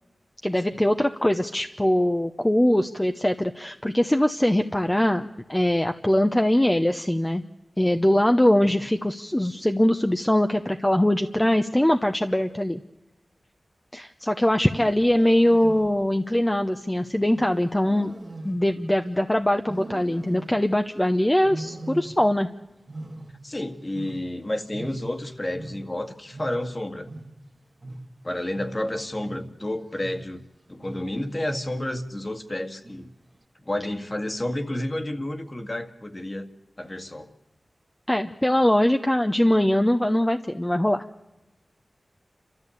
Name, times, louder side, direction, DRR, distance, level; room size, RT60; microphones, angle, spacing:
voice 1, 0.4-7.4 7.8-12.8 13.9-18.1 18.4-22.5 38.1-41.0, left 1 dB, 15° left, 6 dB, 0.9 m, -22 dB
Wild animals, 14.5-16.2 17.3-19.2 19.6-20.8 21.4-22.5 22.8-25.3 25.5-30.4 30.8-31.3 31.7-32.1 32.8-33.3, right 1 dB, 45° right, 1.9 m, -41 dB
voice 2, 23.4-27.1 28.2-33.1 33.7-36.5 36.8-37.3, left 1 dB, 35° left, 6 dB, 1.9 m, -31 dB
29.0 x 13.5 x 8.4 m, 1.0 s
wide cardioid pair, 55°, 0 cm